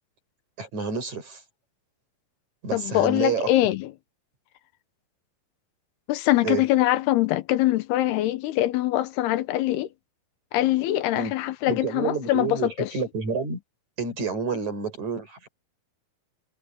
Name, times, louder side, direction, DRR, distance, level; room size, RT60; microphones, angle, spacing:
voice 1, 0.6-1.4 2.6-3.5 6.4-6.6 11.1-11.3 11.7-13.6 14.0-15.5, right 5 dB, 45° right, 8.3 m, -29 dB
voice 2, 2.7-3.9 6.1-9.9 10.5-12.9, left 15 dB, 90° left, 3.1 m, -23 dB
omnidirectional pair, 4.5 m